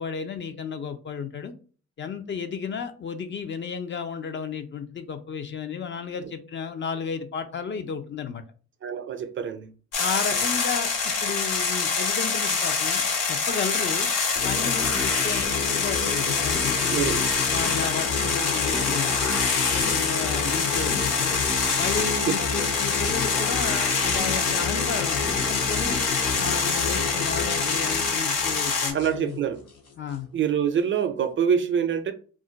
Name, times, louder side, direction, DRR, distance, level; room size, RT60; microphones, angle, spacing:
voice 1, 0.0-1.5 2.0-8.4 10.0-14.1 14.4-19.2 19.7-21.4 21.8-26.0 26.4-29.4 30.0-30.3, left 6 dB, 40° left, 0.5 m, -33 dB
voice 2, 8.8-9.7 10.3-10.4 16.9-17.3 22.2-22.4 28.9-29.6 30.3-32.1, right 8 dB, 40° right, 0.4 m, -25 dB
sound 1, 9.9-28.9, left 5 dB, 85° left, 1.0 m, -25 dB
sound 2, 14.3-30.2, left 4 dB, 55° left, 0.8 m, -31 dB
2.4 x 2.2 x 3.8 m
cardioid pair, 90°, 30 cm